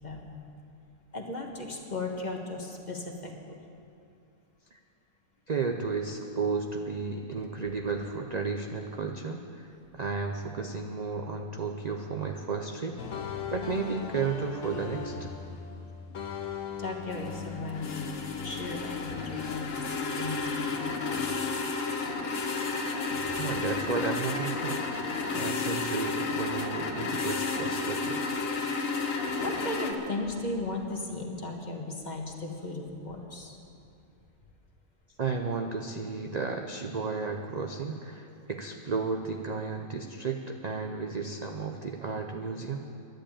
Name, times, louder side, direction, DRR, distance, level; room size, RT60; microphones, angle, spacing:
voice 1, 0.0-0.4 1.1-3.3 16.8-21.2 27.8-28.1 29.1-33.6, left 2 dB, 30° left, 1 dB, 1.4 m, -36 dB
voice 2, 5.5-13.0 13.5-15.3 23.4-28.2 35.2-42.8, right 4 dB, 45° right, 4 dB, 0.5 m, -33 dB
sound 1, 13.0-20.9 21.1-22.7 23.1-24.7, left 6 dB, 65° left, 1.3 m, -41 dB
sound 2, 17.1-29.9, left 4 dB, 50° left, 1.2 m, -32 dB
11.5 x 10.5 x 8.7 m, 2.6 s
omnidirectional pair, 1.5 m